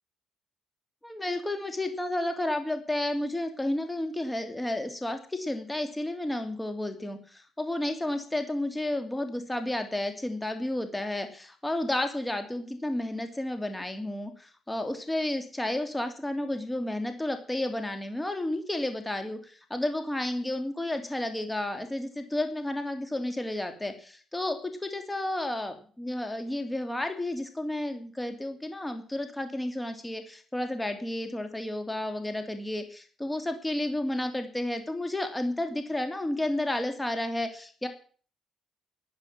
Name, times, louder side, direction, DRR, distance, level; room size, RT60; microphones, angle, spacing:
voice 1, 1.0-37.9, left 1 dB, 10° left, 7 dB, 3.0 m, -32 dB
12.0 x 11.0 x 7.4 m, 0.41 s
cardioid pair, 90°, 0 cm